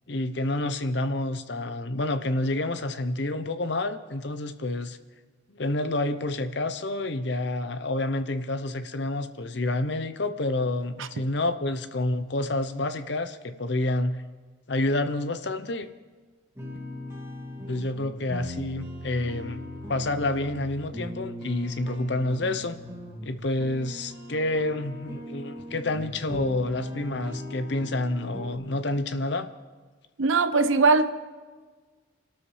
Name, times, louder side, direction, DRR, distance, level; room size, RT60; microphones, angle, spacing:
voice 1, 0.1-5.0 5.5-14.2 14.7-15.9 17.7-22.8 23.2-29.5, left 2 dB, 60° left, 10 dB, 0.8 m, -28 dB
sound 1, 16.6-28.5, left 1 dB, 15° right, 2.4 m, -39 dB
voice 2, 30.2-31.1, right 3 dB, 85° right, 11 dB, 0.8 m, -20 dB
27.0 x 13.0 x 3.3 m, 1.4 s
head